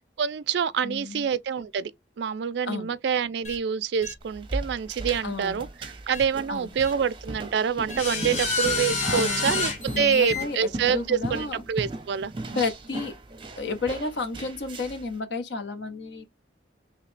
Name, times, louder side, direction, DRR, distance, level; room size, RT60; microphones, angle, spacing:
voice 1, 0.2-1.9 2.2-12.3, right 7 dB, 60° right, 0.3 m, -26 dB
voice 2, 0.8-1.3 2.6-3.0 5.2-5.7 6.5-6.7 9.0-9.5 9.9-11.6 12.5-13.2 13.6-16.2, left 3 dB, 65° left, 0.7 m, -32 dB
sound 1, 3.4-3.6 4.0-4.1 5.1-5.2 6.1-6.2 6.8-6.9 7.9-10.4, left 3 dB, 35° left, 0.9 m, -29 dB
sound 2, 4.2-15.1, right 2 dB, 25° right, 0.6 m, -37 dB
3.1 x 2.9 x 3.1 m
head